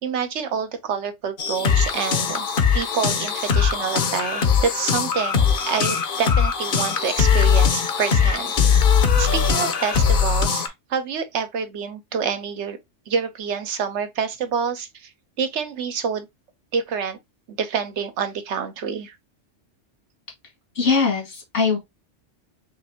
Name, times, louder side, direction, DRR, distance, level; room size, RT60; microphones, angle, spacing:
voice 1, 0.0-2.5 2.7-8.5 9.2-12.8 13.1-15.1 15.4-16.3 16.7-17.2 17.5-19.2, right 6 dB, 70° right, 1.0 m, -27 dB
sound 1, 1.4-10.7, left 6 dB, 50° left, 0.8 m, -20 dB
voice 2, 20.8-21.8, left 5 dB, 80° left, 2.2 m, -21 dB
5.6 x 2.6 x 2.8 m
omnidirectional pair, 1.2 m